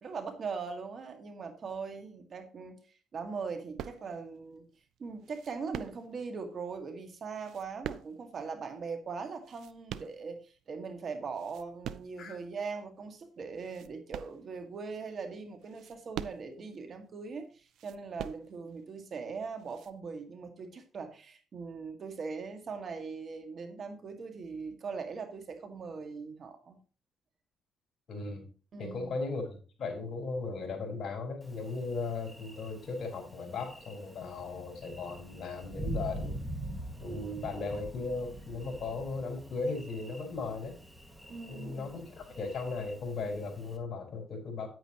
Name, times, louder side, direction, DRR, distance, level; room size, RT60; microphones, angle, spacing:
voice 1, 0.0-2.7 3.1-4.7 5.0-26.8 28.7-29.2 41.3-42.0, right 5 dB, 50° right, 6 dB, 1.9 m, -40 dB
sound 1, 3.8-4.4 5.2-6.3 7.3-8.5 9.2-10.6 11.1-12.2 12.8-12.9 13.5-14.9 15.6-16.8 17.7-18.8 19.6-19.9, right 10 dB, 80° right, 0.5 m, -43 dB
voice 2, 28.1-28.5 28.8-36.4 37.0-40.7 41.5-44.7, left 3 dB, 55° left, 3 dB, 4.3 m, -37 dB
Thunder, 31.4-43.8, right 1 dB, 10° right, 1.9 m, -44 dB
9.5 x 9.3 x 3.0 m, 0.36 s
cardioid pair, 90°, 0 cm